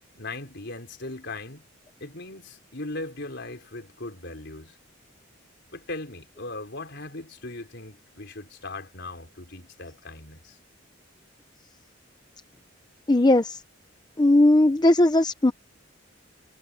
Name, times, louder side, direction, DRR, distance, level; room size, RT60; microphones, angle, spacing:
voice 1, 0.1-1.7 2.0-4.8 5.7-10.6, left 2 dB, 60° left, 4.7 m, -38 dB
voice 2, 13.1-13.6 14.2-15.5, left 1 dB, 20° left, 0.6 m, -18 dB
head